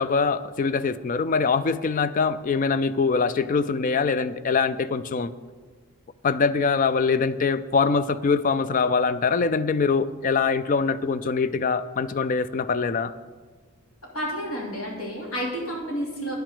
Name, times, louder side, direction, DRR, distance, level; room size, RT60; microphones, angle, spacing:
voice 1, 0.0-5.3 6.2-13.1, left 5 dB, 40° left, 14 dB, 0.3 m, -23 dB
voice 2, 14.1-16.3, equal, 75° left, -3 dB, 2.8 m, -30 dB
10.0 x 6.1 x 6.7 m, 1.5 s
head